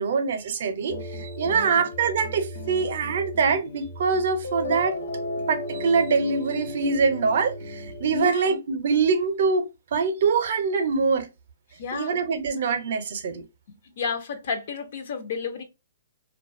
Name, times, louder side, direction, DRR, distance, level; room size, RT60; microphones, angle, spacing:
voice 1, 0.0-5.0 5.5-11.3 11.9-13.4, right 5 dB, 50° right, 0.5 m, -24 dB
sound 1, 0.9-8.2, left 1 dB, 65° left, 0.9 m, -35 dB
voice 2, 1.5-1.9 8.1-8.5 11.8-12.1 14.0-15.6, left 5 dB, 50° left, 0.4 m, -31 dB
2.4 x 2.1 x 2.4 m
hypercardioid pair, 165°, 0 cm